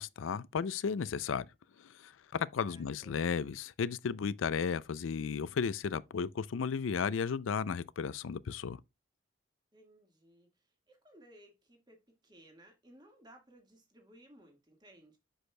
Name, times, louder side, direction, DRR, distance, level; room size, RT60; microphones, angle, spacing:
voice 1, 0.0-1.5 1.8-8.8, left 6 dB, 90° left, 0.4 m, -34 dB
voice 2, 2.6-3.3 9.7-15.2, right 1 dB, 20° right, 1.6 m, -60 dB
7.7 x 6.3 x 2.2 m
head